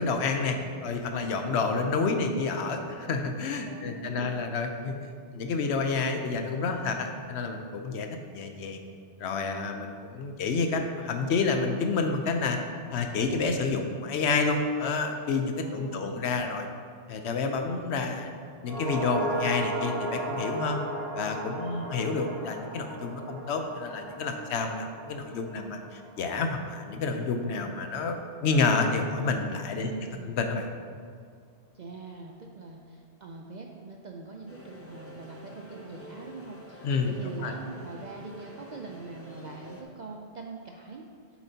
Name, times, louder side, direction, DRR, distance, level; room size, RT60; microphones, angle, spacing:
voice 1, 0.0-4.9 5.3-8.1 8.3-8.8 9.2-12.6 12.9-16.7 17.1-18.3 18.6-20.8 21.2-28.1 28.4-29.9 30.3-30.6 36.8-37.1 37.4-37.5, left 4 dB, 70° left, 5 dB, 0.9 m, -29 dB
voice 2, 3.7-4.4 15.6-16.1 29.8-30.4 31.7-41.1, right 4 dB, 60° right, 1 dB, 0.5 m, -43 dB
sound 1, 18.6-27.1 27.4-27.5, right 1 dB, 15° right, 2.0 m, -36 dB
sound 2, 34.5-39.8, left 1 dB, 15° left, 0.5 m, -48 dB
7.7 x 7.2 x 2.8 m, 2.1 s
omnidirectional pair, 1.2 m